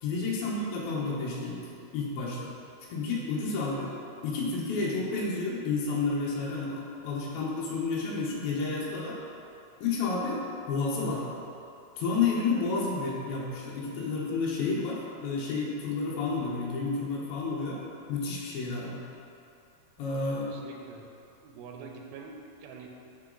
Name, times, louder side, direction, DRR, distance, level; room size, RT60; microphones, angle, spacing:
voice 1, 0.0-1.6 1.9-2.5 2.9-3.9 4.2-9.2 9.8-11.2 12.0-17.8 18.1-19.0 20.0-20.5, left 4 dB, 90° left, -4 dB, 2.6 m, -30 dB
voice 2, 20.5-21.1 21.4-22.9, right 5 dB, 90° right, 1 dB, 2.4 m, -45 dB
7.8 x 3.8 x 3.8 m, 2.7 s
omnidirectional pair, 4.1 m